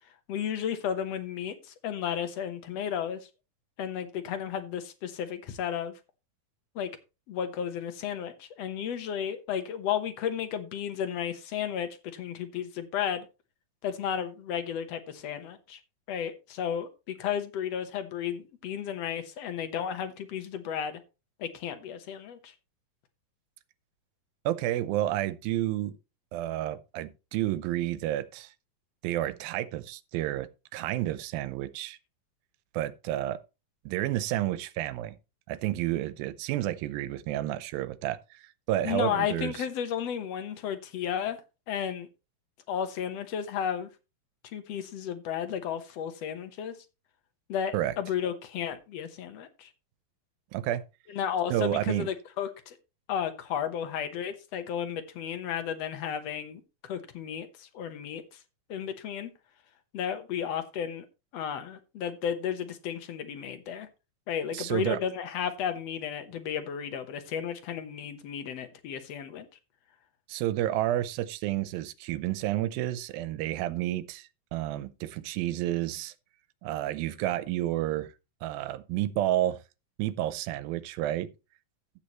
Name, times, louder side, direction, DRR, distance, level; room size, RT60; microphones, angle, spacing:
voice 1, 0.3-3.2 3.8-6.0 6.8-6.9 7.3-13.3 13.8-15.8 16.1-21.0 21.4-22.5 38.8-41.4 41.7-42.1 42.7-43.9 44.5-46.8 47.5-49.7 51.1-52.8 53.1-58.2 58.7-59.3 59.9-61.1 61.3-63.9 64.3-69.5, left 8 dB, 65° left, 1.7 m, -33 dB
voice 2, 24.5-26.0 26.3-28.5 29.0-32.0 32.7-33.4 33.9-35.2 35.5-38.4 38.7-39.5 47.7-47.9 50.5-50.8 51.5-52.1 64.5-65.0 70.3-76.1 76.6-78.1 78.4-79.6 80.0-81.3, right 14 dB, 85° right, 2.5 m, -30 dB
13.0 x 8.6 x 3.0 m
omnidirectional pair, 4.1 m